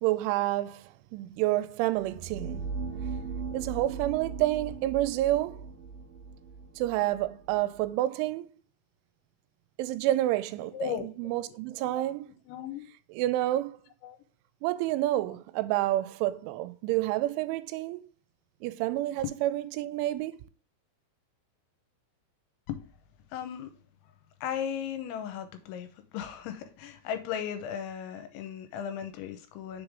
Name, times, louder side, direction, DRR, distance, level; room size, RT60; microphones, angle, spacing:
voice 1, 0.0-2.7 3.5-5.6 6.8-8.5 9.8-12.3 13.1-13.8 14.6-18.0 18.6-20.4, right 15 dB, 90° right, 3.0 m, -29 dB
sound 1, 2.0-7.9, right 5 dB, 70° right, 2.4 m, -38 dB
voice 2, 10.7-11.6 11.9-12.0 12.5-12.9 14.0-14.2 19.2-19.3 22.7-22.9 23.3-23.7 24.4-29.8, left 9 dB, 85° left, 3.0 m, -36 dB
6.6 x 3.7 x 4.8 m
omnidirectional pair, 5.4 m